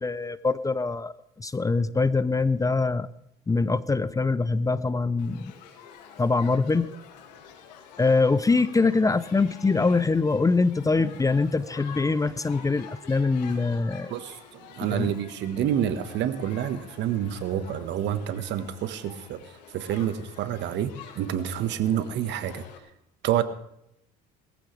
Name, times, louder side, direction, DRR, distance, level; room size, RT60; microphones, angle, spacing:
voice 1, 0.0-3.1 3.5-5.5 6.2-6.9 8.0-14.1 14.9-15.1, left 3 dB, 15° left, 16 dB, 0.7 m, -24 dB
Shout / Human group actions, 5.2-22.8, left 7 dB, 85° left, 2.4 m, -48 dB
voice 2, 14.1-19.4 19.7-22.7 23.2-23.4, right 10 dB, 60° right, 11 dB, 1.6 m, -28 dB
21.0 x 14.5 x 3.4 m, 0.79 s
hypercardioid pair, 80°, 21 cm